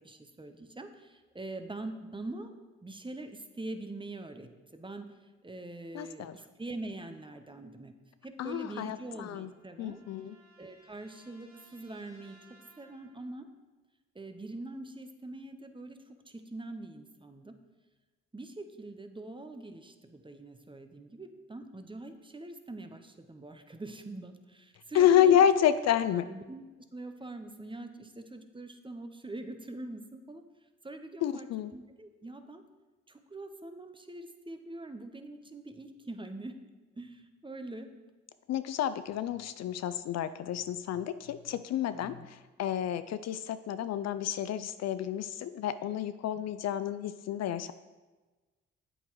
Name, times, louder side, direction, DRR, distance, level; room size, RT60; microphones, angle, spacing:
voice 1, 0.0-2.5 2.8-5.1 5.4-7.9 8.2-10.0 10.6-12.4 12.8-13.5 14.1-17.5 18.3-25.4 26.1-26.6 26.9-30.4 30.8-32.6 33.1-36.6 37.0-37.9 41.9-42.3 46.4-46.5, right 2 dB, 15° right, 7 dB, 0.9 m, -43 dB
voice 2, 5.9-6.4 8.4-9.5 9.8-10.4 24.9-26.3 31.2-31.7 38.5-47.7, left 10 dB, 60° left, 13 dB, 0.4 m, -29 dB
sound 1, 8.8-13.5, right 2 dB, 60° right, 2.2 m, -62 dB
8.3 x 7.9 x 3.1 m, 1.2 s
supercardioid pair, 50°, 30 cm